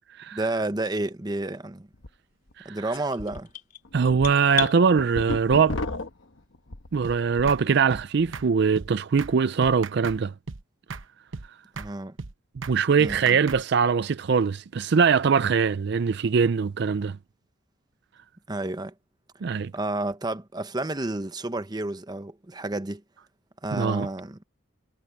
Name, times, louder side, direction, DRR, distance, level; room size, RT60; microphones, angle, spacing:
voice 1, 0.3-1.9 2.6-3.5 11.8-12.2 13.0-13.4 18.5-18.9 19.7-23.0 23.6-24.4, right 2 dB, 20° right, 0.8 m, -30 dB
sound 1, 1.9-2.1 2.5-2.6 3.2-3.4 3.8-7.7 8.0-8.4, left 2 dB, 75° left, 1.3 m, -34 dB
sound 2, 2.9-4.8, left 14 dB, 45° left, 3.6 m, -34 dB
voice 2, 3.9-5.8 6.9-10.3 12.7-17.2 19.4-19.7 23.7-24.1, right 5 dB, 55° right, 0.4 m, -22 dB
sound 3, 7.0-7.2 7.5-7.6 7.9-8.1 8.3-8.5 8.8-8.9 9.2-9.3 9.6-10.2 10.5-10.6 10.9-11.1 11.3-11.5 11.8-11.9 12.2-12.3 12.6-12.8 13.0-13.6, right 4 dB, 80° right, 0.9 m, -36 dB
head